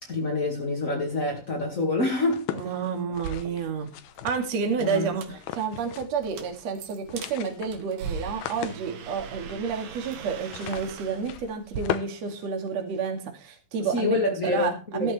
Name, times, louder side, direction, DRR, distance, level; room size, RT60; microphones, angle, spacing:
voice 1, 0.0-2.5 4.8-5.1 13.9-15.1, left 2 dB, 40° left, 1.2 m, -26 dB
sound 1, 2.3-4.8 5.4-6.3 6.5-6.6 6.9-13.1, left 12 dB, 75° left, 2.6 m, -38 dB
voice 2, 2.5-3.9 4.2-14.2 14.4-15.1, right 5 dB, 45° right, 3.2 m, -30 dB
sound 2, 3.1-11.8, right 6 dB, 65° right, 3.0 m, -41 dB
14.0 x 13.5 x 3.4 m
omnidirectional pair, 4.8 m